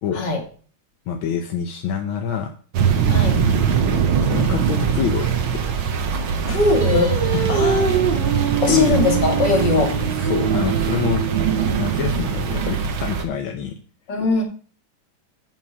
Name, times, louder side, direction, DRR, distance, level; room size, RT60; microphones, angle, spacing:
voice 1, 1.1-2.5 2.8-3.0 4.2-5.7 7.3-7.7 8.2-8.3 8.7-9.4 9.9-11.3 11.8-13.7, left 7 dB, 85° left, 3 dB, 1.7 m, -26 dB
sound 1, 2.7-13.2, right 7 dB, 85° right, 1.9 m, -21 dB
voice 2, 3.1-3.4 6.5-7.2 7.5-7.8 8.6-10.0 14.1-14.4, left 3 dB, 60° left, 3 dB, 2.5 m, -20 dB
Singing, 6.8-12.1, right 6 dB, 25° right, 1.6 m, -25 dB
7.6 x 5.9 x 5.4 m, 0.41 s
omnidirectional pair, 2.2 m